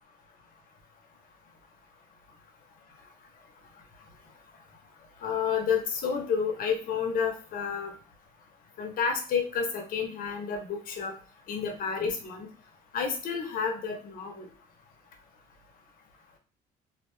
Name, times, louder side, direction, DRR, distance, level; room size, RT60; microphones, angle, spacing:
voice 1, 5.2-7.9 8.8-11.1 11.5-12.5 12.9-14.5, left 6 dB, 55° left, 4 dB, 0.7 m, -30 dB
2.6 x 2.1 x 2.9 m, 0.37 s
cardioid pair, 110°, 17 cm